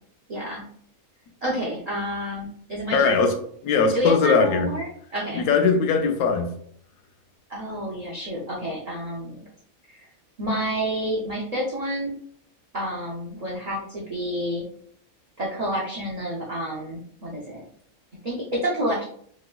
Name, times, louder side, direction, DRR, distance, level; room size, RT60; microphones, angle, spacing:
voice 1, 0.3-0.6 1.4-3.2 3.9-5.4 7.5-9.4 9.9-10.1 10.4-12.2 12.7-14.7 15.4-17.6 18.2-19.0, equal, 70° right, -3 dB, 0.3 m, -29 dB
voice 2, 2.9-3.3 3.6-4.7 5.3-6.5, left 5 dB, 85° left, 6 dB, 1.0 m, -20 dB
3.3 x 3.0 x 2.2 m, 0.62 s
omnidirectional pair, 1.5 m